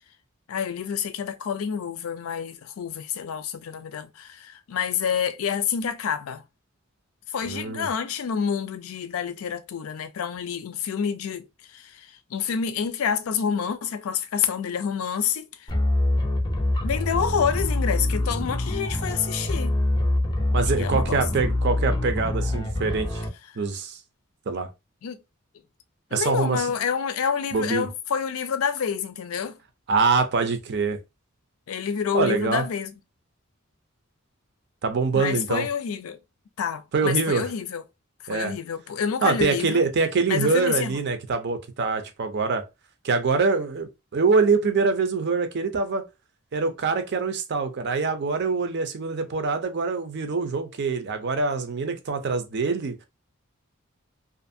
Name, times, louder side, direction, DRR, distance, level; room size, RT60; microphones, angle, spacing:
voice 1, 0.5-6.4 7.3-15.7 16.8-19.8 20.8-21.2 25.0-25.2 26.1-29.6 31.7-32.9 35.1-36.2 36.6-37.8 38.3-39.8 40.3-41.0, left 7 dB, 80° left, 0.4 m, -28 dB
voice 2, 7.4-7.9 20.5-23.2 23.6-24.0 24.5-24.7 26.1-26.7 27.5-27.9 29.9-31.0 32.1-32.7 34.8-35.7 36.9-37.5 38.3-38.6 39.2-42.6 43.0-46.0 46.5-53.0, right 4 dB, 55° right, 0.5 m, -24 dB
sound 1, 15.7-23.3, left 1 dB, 20° left, 0.5 m, -25 dB
2.5 x 2.5 x 2.6 m
head